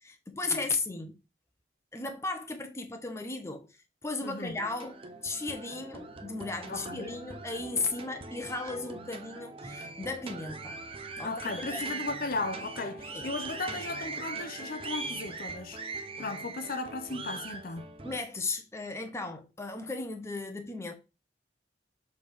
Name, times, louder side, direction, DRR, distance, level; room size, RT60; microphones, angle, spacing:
voice 1, 0.0-1.1 1.9-3.7 4.0-5.0 5.2-10.8 11.2-11.8 13.1-13.3 18.0-20.9, left 3 dB, 15° left, 1.0 m, -35 dB
voice 2, 4.2-4.6 6.7-7.2 11.2-15.9 16.2-17.9, left 3 dB, 55° left, 0.8 m, -36 dB
sound 1, 4.5-18.2, right 3 dB, 35° right, 0.8 m, -41 dB
6.9 x 3.6 x 4.8 m
head